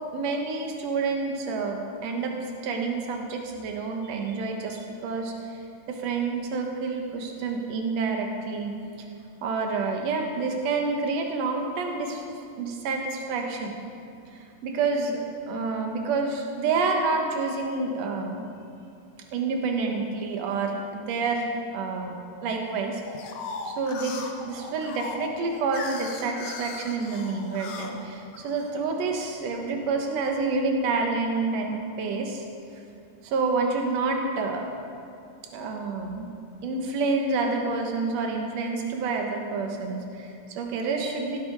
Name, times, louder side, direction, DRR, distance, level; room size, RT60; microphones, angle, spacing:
voice 1, 0.1-2.3 2.6-5.5 5.9-8.8 9.4-12.2 12.6-13.7 14.6-18.5 19.3-21.5 21.7-22.2 22.4-23.0 23.7-32.4 33.2-34.7 35.5-36.3 36.6-41.5, right 4 dB, 60° right, 2 dB, 2.0 m, -28 dB
sound 1, 23.1-28.8 29.3-30.0, left 5 dB, 75° left, 1.4 m, -38 dB
16.5 x 8.6 x 4.7 m, 2.5 s
omnidirectional pair, 4.0 m